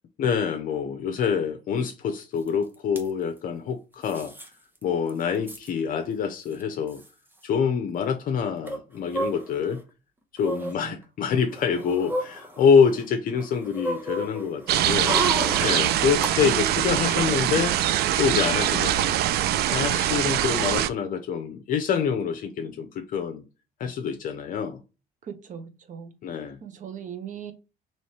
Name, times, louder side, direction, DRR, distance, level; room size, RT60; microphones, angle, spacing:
voice 1, 0.2-4.3 4.8-7.0 7.4-9.8 10.3-15.2 15.6-17.7 18.2-19.2 19.6-23.4 23.8-24.8 26.2-26.6, left 6 dB, 55° left, 0.6 m, -26 dB
sound 1, 2.5-2.6 2.7-3.1 4.0-4.5 4.8-4.9 5.1-5.7 6.5-6.6 6.9-7.1 8.6-9.8 10.4-10.7 11.4-13.0 13.4-16.3 16.6-16.7, right 1 dB, 10° right, 0.9 m, -32 dB
voice 2, 10.6-11.0 25.2-26.1 26.6-27.5, right 8 dB, 50° right, 0.9 m, -39 dB
sound 2, 14.7-20.9, right 12 dB, 70° right, 0.4 m, -23 dB
3.2 x 3.1 x 4.1 m
cardioid pair, 110°, 17 cm